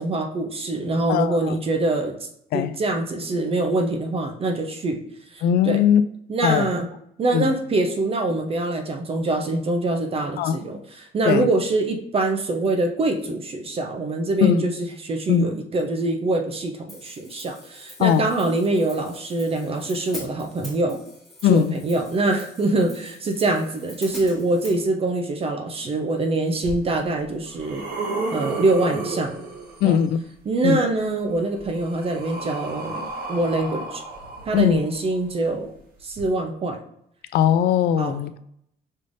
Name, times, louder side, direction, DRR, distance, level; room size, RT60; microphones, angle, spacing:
voice 1, 0.0-2.1 2.5-5.0 5.3-5.8 6.3-6.9 7.2-10.8 11.1-14.7 15.0-21.0 21.5-27.8 28.3-29.3 29.8-30.0 30.5-34.0 34.5-35.7 36.0-36.8 38.0-38.1, right 2 dB, 35° right, 0.7 m, -24 dB
voice 2, 1.1-1.5 2.5-2.8 5.4-6.0 6.4-6.7 7.3-7.5 10.4-10.6 11.3-11.5 14.4-14.7 15.3-15.5 18.0-18.3 21.4-21.8 29.8-30.2 30.6-30.8 34.5-34.8 37.3-38.4, left 9 dB, 70° left, 0.4 m, -20 dB
Hi-hat, 16.9-24.8, left 1 dB, ahead, 1.4 m, -44 dB
sound 1, 26.6-26.7 27.3-30.1 31.3-35.2 36.1-36.2, right 3 dB, 60° right, 1.4 m, -33 dB
5.5 x 3.3 x 2.6 m
cardioid pair, 110°, 17 cm